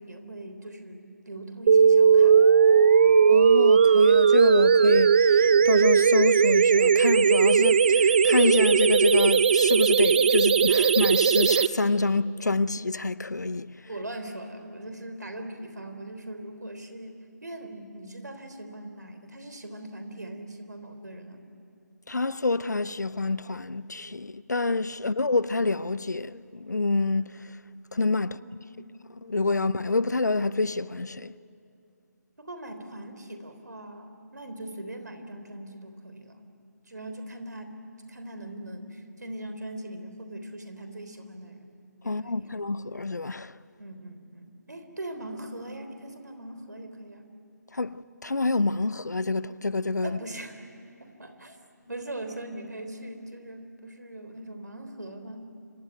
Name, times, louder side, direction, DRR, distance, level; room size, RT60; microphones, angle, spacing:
voice 1, 0.0-2.5 3.0-3.2 13.9-21.5 28.2-28.9 32.4-36.5 36.9-37.8 38.1-41.7 42.0-42.5 43.8-47.3 50.0-50.6 51.0-51.6 51.9-55.4, right 1 dB, 70° right, 3.6 m, -41 dB
sound 1, 1.7-11.7, right 6 dB, 35° right, 0.6 m, -18 dB
voice 2, 3.3-13.8 22.1-27.5 27.9-28.6 29.2-31.3 42.0-43.5 47.7-50.2, left 3 dB, 70° left, 0.8 m, -27 dB
26.0 x 24.5 x 9.3 m
figure-of-eight pair, 150°, 10 cm